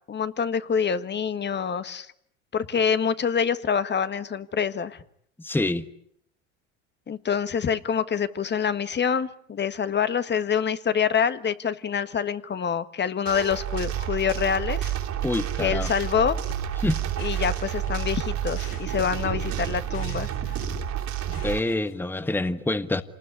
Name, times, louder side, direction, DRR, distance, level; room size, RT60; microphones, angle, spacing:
voice 1, 0.1-2.1 2.5-5.0 7.1-14.9 15.6-16.4 17.2-20.3, left 7 dB, 25° left, 1.5 m, -26 dB
voice 2, 5.4-5.9 15.2-15.9 16.8-17.1 21.3-23.0, left 2 dB, 5° left, 1.3 m, -26 dB
sound 1, 13.2-21.6, right 11 dB, 45° right, 3.4 m, -30 dB
sound 2, 15.8-22.0, left 6 dB, 75° left, 6.7 m, -42 dB
27.0 x 20.0 x 9.8 m
hypercardioid pair, 90°, 39 cm